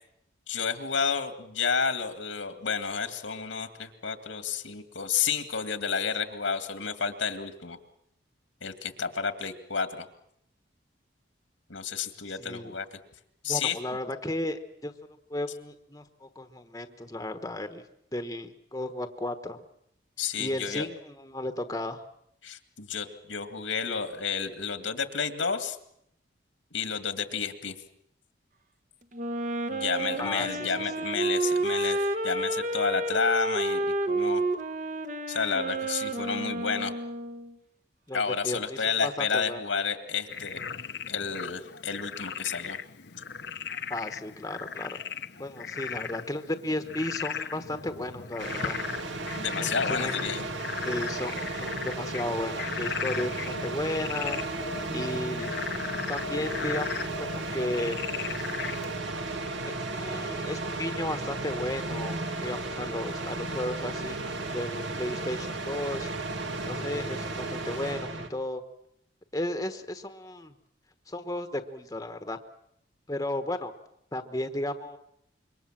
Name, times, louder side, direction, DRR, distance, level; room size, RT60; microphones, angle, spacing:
voice 1, 0.5-7.8 8.6-10.1 11.7-12.9 13.4-13.8 20.2-20.9 22.4-25.8 26.7-27.7 29.7-34.4 35.3-36.9 38.1-40.6 41.1-42.8 49.4-50.5, left 6 dB, 85° left, 9 dB, 2.2 m, -31 dB
voice 2, 12.4-12.7 13.5-14.9 15.3-17.8 18.1-19.6 20.4-22.0 30.2-30.7 38.1-39.6 43.9-45.0 45.4-48.7 49.6-50.3 50.8-54.4 54.9-55.6 56.1-56.9 57.2-58.0 59.6-66.1 66.6-68.6 69.3-70.5 71.1-72.4 73.1-73.7 74.1-75.0, left 1 dB, 20° left, 8 dB, 1.3 m, -34 dB
Wind instrument woodwind instrument, 29.1-37.5, right 2 dB, 40° right, 1.4 m, -30 dB
Frog, 40.3-59.0, left 6 dB, 60° left, 1.0 m, -37 dB
sound 1, 48.4-68.3, right 2 dB, 75° right, 2.5 m, -34 dB
26.5 x 23.5 x 7.5 m, 0.74 s
head